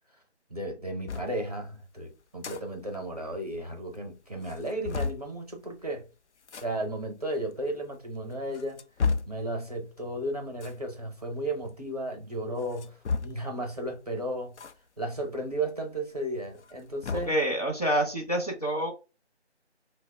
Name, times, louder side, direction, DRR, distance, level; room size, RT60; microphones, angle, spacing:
voice 1, 0.5-6.1 6.5-8.8 9.3-12.9 13.2-14.5 15.0-17.3, right 1 dB, 35° right, 0.7 m, -34 dB
sound 1, 1.1-1.3 2.2-2.6 2.9-3.0 3.3-3.4 3.9-4.0 4.4-5.3 6.4-6.7 7.5-7.6 8.3-9.4 10.5-10.8 12.6-13.5 14.5-14.7 15.1-15.2 16.5-17.4, left 5 dB, 75° left, 0.5 m, -32 dB
voice 2, 17.1-18.9, right 1 dB, 35° left, 0.8 m, -27 dB
2.6 x 2.1 x 3.9 m
figure-of-eight pair, 175°, 34 cm